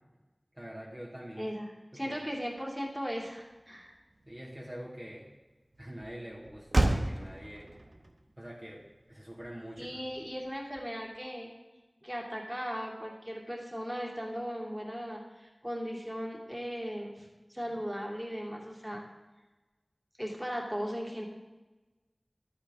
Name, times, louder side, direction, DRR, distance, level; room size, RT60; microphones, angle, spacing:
voice 1, 0.5-1.5 2.0-2.2 4.2-5.3 5.8-7.7 8.4-10.0, equal, 25° right, -6 dB, 2.1 m, -44 dB
voice 2, 1.4-3.9 9.8-11.5 12.0-19.0 20.2-21.2, equal, 10° right, -2 dB, 2.6 m, -37 dB
Motor vehicle (road), 2.6-11.3, right 1 dB, 70° right, 1.0 m, -36 dB
12.0 x 9.7 x 3.6 m, 1.2 s
wide cardioid pair, 45°, 0 cm